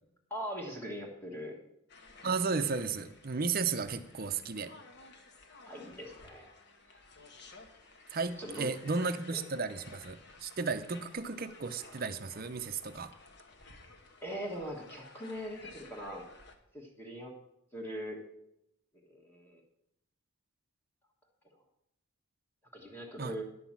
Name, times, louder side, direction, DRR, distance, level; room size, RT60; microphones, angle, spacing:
voice 1, 0.3-1.6 5.7-6.4 8.4-8.7 9.3-9.4 14.2-16.2 16.7-17.3 17.7-18.2 19.1-19.6 22.7-23.4, equal, 10° left, 0 dB, 1.4 m, -41 dB
sound 1, 1.9-16.6, left 3 dB, 50° left, 1.2 m, -55 dB
voice 2, 2.2-4.7 8.1-13.1 23.2-23.3, right 4 dB, 40° right, 11 dB, 0.6 m, -34 dB
11.0 x 6.0 x 7.3 m, 0.83 s
head